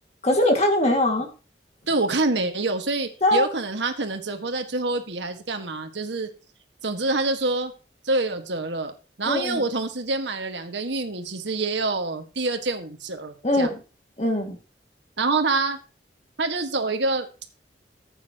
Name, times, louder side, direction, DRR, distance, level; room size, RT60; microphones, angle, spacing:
voice 1, 0.2-1.3 3.2-3.5 9.3-9.6 13.4-13.8 14.2-14.6, left 1 dB, 35° left, 3 dB, 2.2 m, -21 dB
voice 2, 1.9-6.3 6.8-7.7 8.0-13.7 15.2-15.8 16.4-17.3, right 3 dB, 80° right, 6 dB, 1.8 m, -26 dB
15.0 x 8.8 x 3.0 m, 0.33 s
head